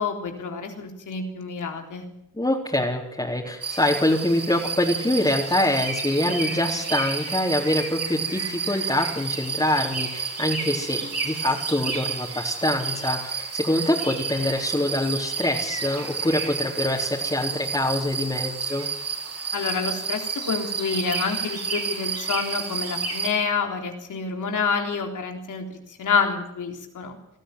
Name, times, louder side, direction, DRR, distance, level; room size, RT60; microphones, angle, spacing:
voice 1, 0.0-2.0 19.5-27.2, left 5 dB, 70° left, 4 dB, 3.8 m, -28 dB
voice 2, 2.3-18.9, left 1 dB, 15° left, -3 dB, 4.1 m, -25 dB
sound 1, 3.6-23.3, right 5 dB, 50° right, 6.3 m, -30 dB
20.0 x 14.0 x 9.6 m, 0.79 s
supercardioid pair, 50°, 31 cm